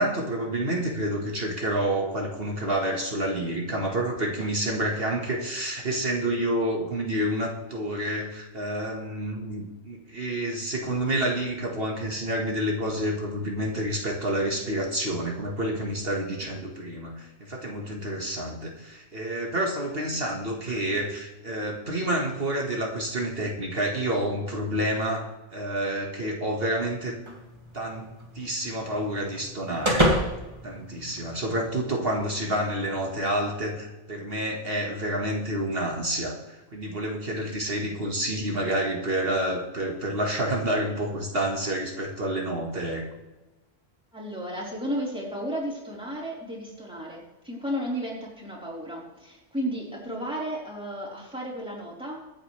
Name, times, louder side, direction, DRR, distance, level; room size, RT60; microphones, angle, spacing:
voice 1, 0.0-27.2 27.7-30.1 30.6-43.1, right 1 dB, 55° right, 1 dB, 1.8 m, -29 dB
sound 1, 27.3-31.7, equal, 25° right, 2.4 m, -29 dB
voice 2, 44.1-52.2, equal, 5° right, -4 dB, 4.1 m, -33 dB
24.0 x 8.6 x 3.3 m, 1.1 s
omnidirectional pair, 1.2 m